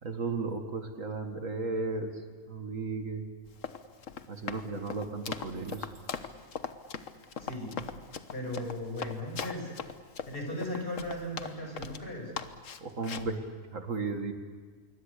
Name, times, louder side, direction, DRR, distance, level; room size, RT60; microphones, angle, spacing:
voice 1, 0.0-2.1 2.5-3.2 4.3-5.9 12.8-13.4 13.7-14.3, right 3 dB, 60° right, 5 dB, 2.2 m, -34 dB
Run, 3.5-12.0 12.4-13.3, left 6 dB, 65° left, 1.5 m, -39 dB
voice 2, 7.4-7.9 8.3-9.7 10.3-12.3, left 1 dB, 40° left, 1 dB, 6.8 m, -37 dB
26.0 x 23.5 x 8.4 m, 1.5 s
omnidirectional pair, 1.5 m